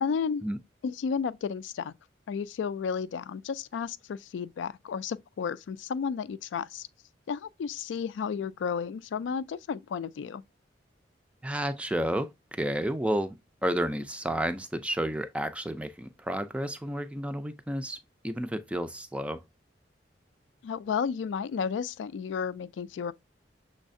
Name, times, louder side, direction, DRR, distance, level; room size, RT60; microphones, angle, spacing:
voice 1, 0.0-0.4 0.8-1.9 2.3-6.9 7.3-10.4 20.6-23.1, left 6 dB, 80° left, 0.3 m, -32 dB
voice 2, 11.4-13.4 13.6-18.0 18.2-19.4, right 1 dB, 5° right, 0.3 m, -31 dB
6.3 x 3.2 x 2.6 m
head